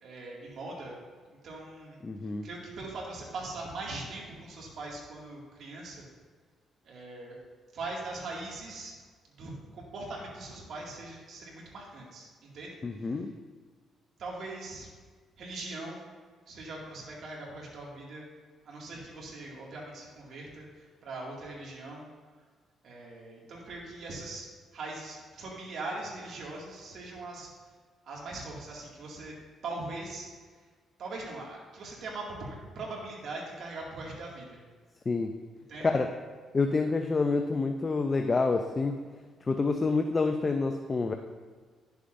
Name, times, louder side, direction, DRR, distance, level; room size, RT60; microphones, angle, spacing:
voice 1, 0.0-0.9 1.4-2.0 2.4-6.1 6.9-7.4 7.7-8.9 9.4-12.7 14.2-14.9 15.4-16.0 16.5-18.2 18.7-20.7 21.0-22.0 22.8-24.5 24.7-27.5 28.0-29.3 29.6-30.3 31.0-34.6 35.7-35.9, right 2 dB, 65° right, -3 dB, 2.2 m, -41 dB
voice 2, 2.0-2.5 12.8-13.3 35.1-35.3 35.8-36.1 36.5-39.0 39.5-41.1, left 3 dB, 30° left, 5 dB, 0.5 m, -27 dB
11.0 x 6.8 x 2.6 m, 1.5 s
cardioid pair, 90°, 0 cm